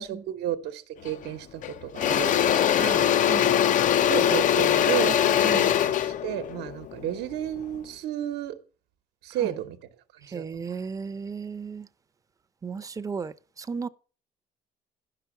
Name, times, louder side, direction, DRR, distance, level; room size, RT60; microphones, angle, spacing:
voice 1, 0.0-3.1 4.1-5.2 5.5-8.5 9.2-9.8 10.3-10.4, right 11 dB, 85° right, 1.0 m, -32 dB
Engine / Drill, 1.1-1.3 1.6-7.8, left 10 dB, 50° left, 0.4 m, -22 dB
voice 2, 5.4-5.8 9.4-9.5 10.3-11.9 12.6-13.9, right 5 dB, 20° right, 0.5 m, -35 dB
10.0 x 5.9 x 7.0 m
cardioid pair, 110°, 17 cm